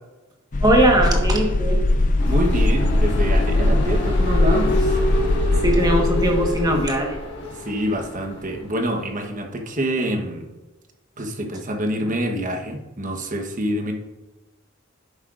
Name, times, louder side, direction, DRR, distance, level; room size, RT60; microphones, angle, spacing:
sound 1, 0.5-7.2, left 2 dB, 40° left, 0.5 m, -20 dB
voice 1, 0.6-1.8 5.6-7.1, right 1 dB, 20° right, 1 dB, 1.4 m, -19 dB
sound 2, 2.2-8.7, left 1 dB, 60° left, 1.7 m, -27 dB
voice 2, 2.3-4.9 7.6-10.4 11.2-13.9, equal, 40° right, 3 dB, 1.2 m, -26 dB
10.5 x 8.0 x 2.5 m, 1.1 s
head